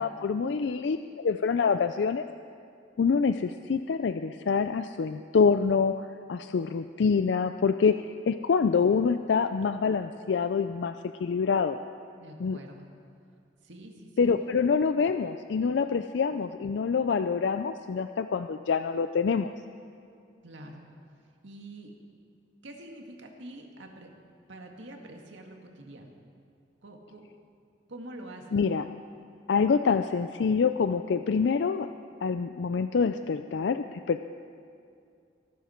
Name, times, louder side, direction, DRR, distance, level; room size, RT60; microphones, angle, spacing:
voice 1, 0.0-2.3 3.0-11.8 12.4-12.6 14.2-19.5 28.5-28.8 29.5-31.9 32.2-34.2, left 5 dB, 75° left, 10 dB, 0.4 m, -26 dB
voice 2, 12.2-12.9 13.6-14.3 15.7-16.0 20.4-20.8 21.4-21.9 22.6-24.1 24.5-26.2 26.8-27.2 27.9-28.6, right 1 dB, 90° right, 2 dB, 2.0 m, -46 dB
23.5 x 12.0 x 4.5 m, 2.4 s
head